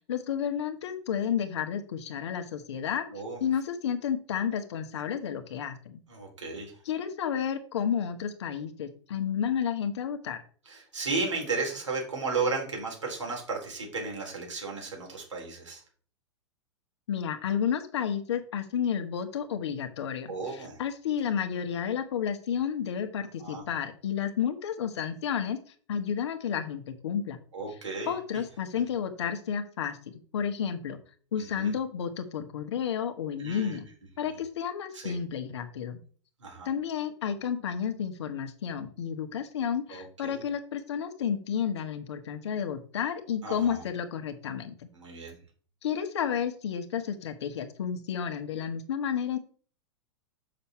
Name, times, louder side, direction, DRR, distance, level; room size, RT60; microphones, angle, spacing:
voice 1, 0.1-3.0 3.4-6.0 6.8-10.4 17.1-25.6 25.9-27.4 28.1-30.0 30.3-31.0 31.3-33.9 34.2-36.0 36.6-44.7 45.8-49.4, left 8 dB, 65° left, 7 dB, 1.4 m, -31 dB
voice 2, 6.1-6.7 10.7-15.8 20.3-20.8 23.4-23.6 27.5-28.4 31.6-31.7 33.4-33.8 34.2-34.3 34.9-35.1 36.4-36.7 39.9-40.4 43.4-43.8 44.9-45.4, right 4 dB, 85° right, -1 dB, 4.0 m, -34 dB
7.0 x 6.6 x 4.5 m, 0.43 s
figure-of-eight pair, 100°, 15 cm